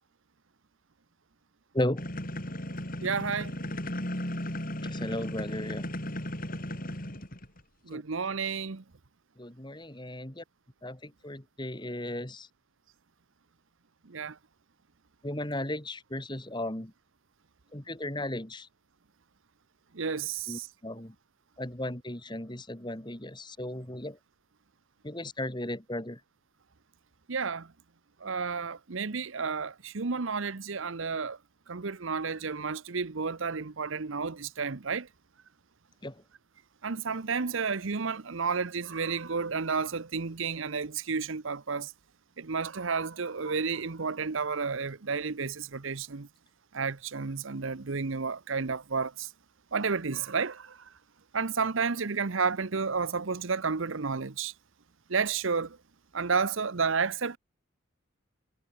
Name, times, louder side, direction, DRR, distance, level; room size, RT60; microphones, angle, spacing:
voice 1, 1.7-2.1 4.8-5.9 7.9-8.0 9.4-10.4 10.8-12.5 15.2-16.9 17.7-18.7 20.5-21.1 21.6-24.2 25.0-26.2 36.0-36.2, left 1 dB, 20° left, 2.5 m, -35 dB
sound 1, 2.0-7.6, left 1 dB, 40° left, 6.4 m, -36 dB
voice 2, 3.0-3.5 7.9-8.8 14.1-14.4 19.9-20.7 27.3-27.7 28.2-31.4 31.7-35.1 36.8-41.9 42.4-46.3 46.7-49.3 49.7-50.8 51.3-54.5 55.1-55.8 56.1-57.4, right 5 dB, 70° right, 0.9 m, -31 dB
head